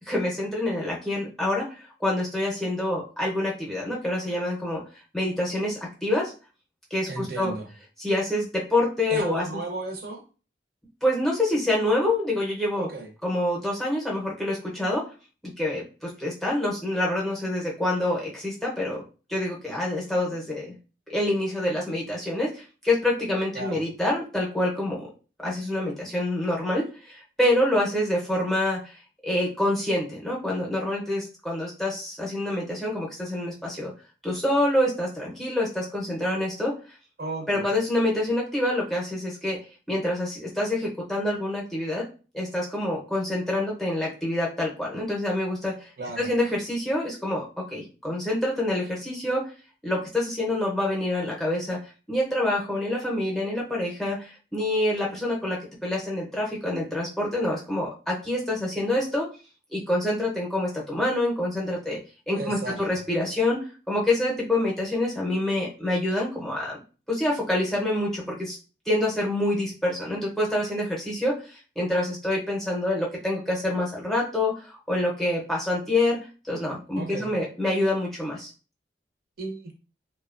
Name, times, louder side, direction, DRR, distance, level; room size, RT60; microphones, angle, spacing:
voice 1, 0.0-4.8 5.1-6.3 6.9-7.5 8.0-9.4 11.0-12.9 13.2-15.0 15.4-19.0 19.3-20.7 21.1-25.1 25.4-33.9 34.2-37.0 37.5-39.6 39.9-42.1 42.3-49.5 49.8-59.3 59.7-62.0 62.3-66.8 67.1-68.6 68.9-76.2 76.4-78.5, left 1 dB, ahead, -5 dB, 0.6 m, -27 dB
voice 2, 7.1-7.7 9.1-10.2 12.8-13.1 23.5-23.8 37.2-37.7 46.0-46.3 62.3-63.0 77.0-77.3 79.4-79.7, right 3 dB, 55° right, 1 dB, 0.6 m, -34 dB
2.8 x 2.1 x 2.4 m, 0.35 s
head